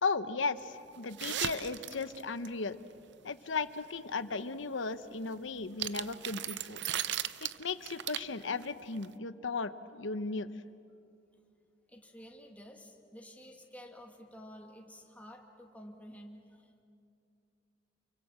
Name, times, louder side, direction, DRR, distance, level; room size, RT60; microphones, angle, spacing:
voice 1, 0.0-2.8 3.2-6.9 7.6-10.5, left 4 dB, 90° left, 12 dB, 1.0 m, -36 dB
sound 1, 1.0-2.5 5.6-8.6 9.0-9.1, right 11 dB, 65° right, 0.7 m, -36 dB
voice 2, 11.9-16.8, equal, 10° left, 1 dB, 2.5 m, -51 dB
29.5 x 23.5 x 7.4 m, 2.4 s
head